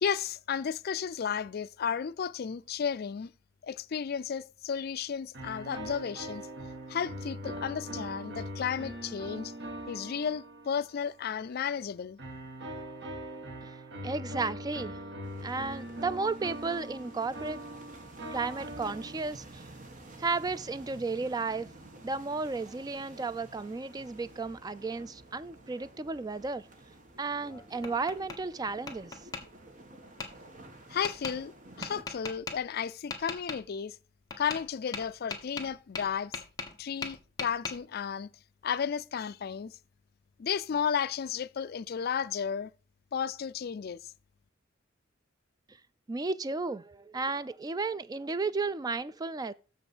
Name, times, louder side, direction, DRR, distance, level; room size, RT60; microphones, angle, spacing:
voice 1, 0.0-3.3 3.7-6.5 6.9-9.5 9.9-12.2 30.9-31.5 31.8-34.0 34.4-36.3 36.8-38.3 38.6-39.7 40.4-42.7 43.1-44.1, left 7 dB, 50° left, 0.4 m, -33 dB
sound 1, 5.3-11.1 12.2-19.6, right 1 dB, 60° right, 1.6 m, -42 dB
voice 2, 14.0-15.0 15.4-17.8 18.3-19.6 20.2-21.7 22.0-26.7 27.2-29.2 46.1-49.5, right 3 dB, 20° right, 0.3 m, -33 dB
sound 2, 15.2-32.0, right 2 dB, 40° right, 1.3 m, -51 dB
Tap, 27.3-28.4 28.9-29.4 30.2-30.3 31.0-31.3 31.8-32.6 33.1-33.6 34.3-34.7 34.9-36.8 37.0-37.7, left 4 dB, 20° left, 1.4 m, -38 dB
7.1 x 5.6 x 6.1 m
head